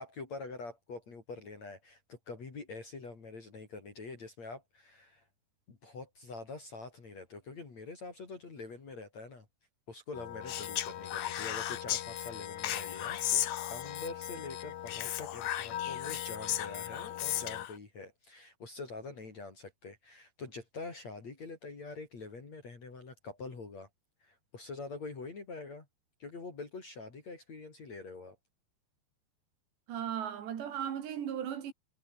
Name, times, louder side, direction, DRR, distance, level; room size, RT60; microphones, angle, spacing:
voice 1, 0.0-5.2 5.7-9.5 9.9-13.4 13.7-23.9 24.2-25.9 26.2-28.4, left 3 dB, 40° left, 5.3 m, -45 dB
sound 1, 10.1-17.7, left 12 dB, 60° left, 2.3 m, -42 dB
Speech, 10.5-12.0 12.6-14.1 14.9-17.7, left 12 dB, 80° left, 1.5 m, -35 dB
voice 2, 29.9-31.7, right 9 dB, 80° right, 4.9 m, -36 dB
omnidirectional pair, 4.9 m